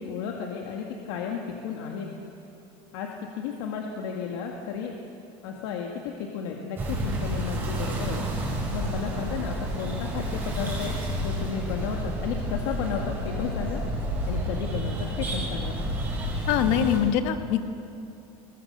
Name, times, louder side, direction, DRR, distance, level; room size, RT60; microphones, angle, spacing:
voice 1, 0.0-2.1 2.9-4.9 5.4-8.3 8.7-13.8 14.2-15.8, left 6 dB, 80° left, 1 dB, 1.9 m, -33 dB
sound 1, 6.8-17.0, right 1 dB, 15° right, 5.7 m, -30 dB
voice 2, 16.5-17.6, left 9 dB, 65° left, 8 dB, 1.4 m, -23 dB
21.5 x 20.0 x 6.7 m, 2.7 s
cardioid pair, 170°, 13 cm